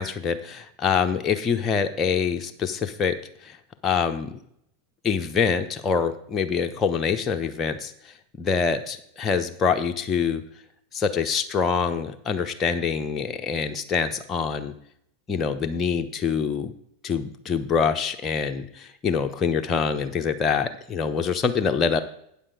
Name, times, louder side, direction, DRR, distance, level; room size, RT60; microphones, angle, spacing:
voice 1, 0.0-3.1 3.4-3.6 3.8-4.4 5.0-7.9 8.4-10.4 10.9-14.7 15.3-16.7 17.0-22.0, left 6 dB, 30° left, 5 dB, 0.9 m, -25 dB
8.9 x 7.3 x 5.0 m, 0.70 s
hypercardioid pair, 90°, 0 cm